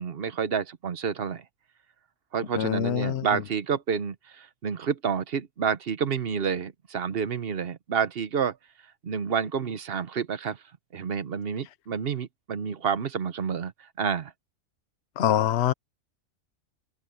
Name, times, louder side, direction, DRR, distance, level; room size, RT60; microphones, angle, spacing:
voice 1, 0.0-1.4 2.3-8.6 9.0-10.6 10.9-13.7 14.0-14.3, right 6 dB, 55° right, 1.1 m, -29 dB
voice 2, 2.6-3.3 15.2-15.7, left 11 dB, 65° left, 0.9 m, -24 dB
open air
omnidirectional pair, 1.3 m